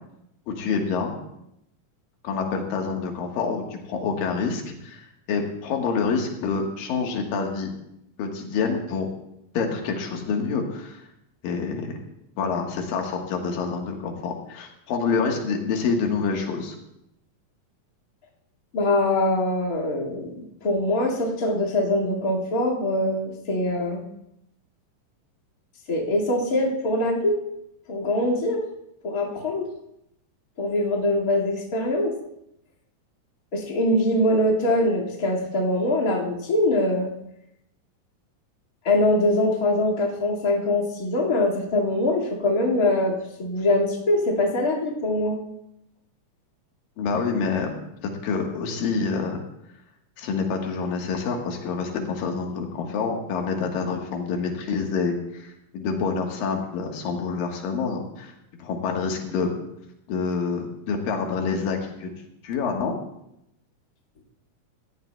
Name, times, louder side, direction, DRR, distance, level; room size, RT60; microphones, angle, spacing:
voice 1, 0.5-1.2 2.2-7.7 8.2-9.1 9.5-11.0 11.4-11.9 12.4-16.8 47.0-47.8 48.2-49.4 50.2-58.3 58.6-59.5 60.1-62.1 62.4-62.9, left 5 dB, 85° left, 2 dB, 3.1 m, -27 dB
voice 2, 18.7-24.0 25.9-27.4 27.9-28.6 29.0-29.7 30.6-32.1 33.5-37.1 38.8-45.4, left 1 dB, 30° left, -4 dB, 2.0 m, -23 dB
17.5 x 14.5 x 2.3 m, 0.80 s
omnidirectional pair, 3.9 m